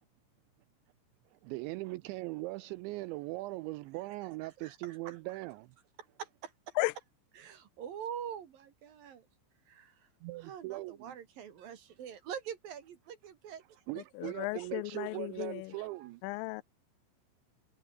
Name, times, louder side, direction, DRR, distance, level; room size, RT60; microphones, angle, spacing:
voice 1, 1.3-5.7 10.2-11.2 13.9-16.2, right 20 dB, 85° right, 2.6 m, -40 dB
voice 2, 4.6-5.2 6.2-6.7 7.4-9.3 9.7-10.1 10.4-13.6 14.2-14.7 15.3-15.5 15.9-16.1, right 8 dB, 55° right, 3.0 m, -45 dB
voice 3, 14.2-15.7 16.2-16.6, left 22 dB, 85° left, 3.2 m, -35 dB
omnidirectional pair, 5.8 m